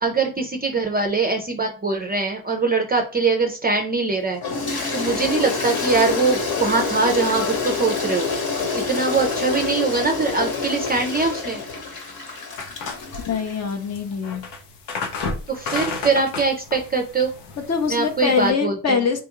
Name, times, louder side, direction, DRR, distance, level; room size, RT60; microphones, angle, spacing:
voice 1, 0.0-4.4 4.7-8.3 8.7-11.6 15.5-17.3 17.9-19.0, right 4 dB, 20° right, 3 dB, 0.4 m, -22 dB
Toilet flush, 4.4-13.8, left 4 dB, 55° left, 1.1 m, -27 dB
sound 1, 12.6-18.5, left 4 dB, 80° left, 0.8 m, -32 dB
voice 2, 13.2-14.5 17.7-19.2, left 6 dB, 35° left, 6 dB, 0.6 m, -23 dB
3.5 x 2.3 x 2.9 m, 0.37 s
cardioid pair, 85°, 45 cm